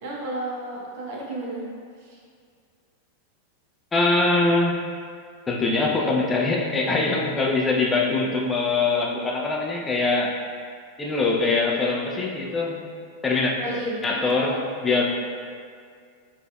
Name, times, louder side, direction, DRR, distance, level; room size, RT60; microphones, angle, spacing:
voice 1, 0.0-1.6 2.0-2.2 13.6-14.0, right 1 dB, 50° right, -4 dB, 0.7 m, -32 dB
voice 2, 3.9-4.8 5.5-10.4 11.0-12.9 13.2-13.5 14.0-15.0, left 3 dB, 15° left, -2 dB, 0.4 m, -23 dB
4.8 x 2.6 x 2.2 m, 2.1 s
figure-of-eight pair, 90°, 0 cm